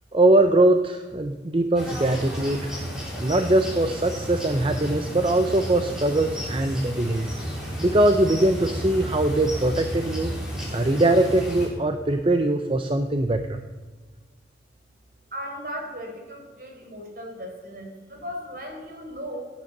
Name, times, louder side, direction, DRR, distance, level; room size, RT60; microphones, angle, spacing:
voice 1, 0.1-2.7 3.2-7.3 7.8-10.3 10.7-13.6, right 1 dB, 30° right, 7 dB, 0.7 m, -21 dB
sound 1, 1.8-11.7, equal, 5° right, 4.2 m, -32 dB
voice 2, 15.3-19.5, equal, 50° right, 2 dB, 4.3 m, -37 dB
17.0 x 10.0 x 6.6 m, 1.3 s
head